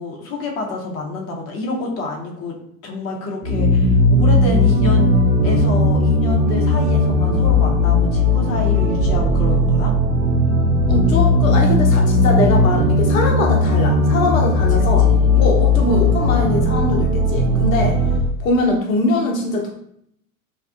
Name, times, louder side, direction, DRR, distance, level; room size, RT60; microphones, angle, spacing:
voice 1, 0.0-2.6 2.8-5.1 5.4-9.9 15.0-15.3, left 2 dB, 35° left, -1 dB, 0.7 m, -28 dB
sound 1, 3.4-18.2, left 2 dB, 70° right, 0.7 m, -16 dB
voice 2, 10.9-15.1 15.3-18.0 18.4-19.7, left 3 dB, 70° left, 0 dB, 0.6 m, -22 dB
2.6 x 2.3 x 2.4 m, 0.71 s
figure-of-eight pair, 75°, 41 cm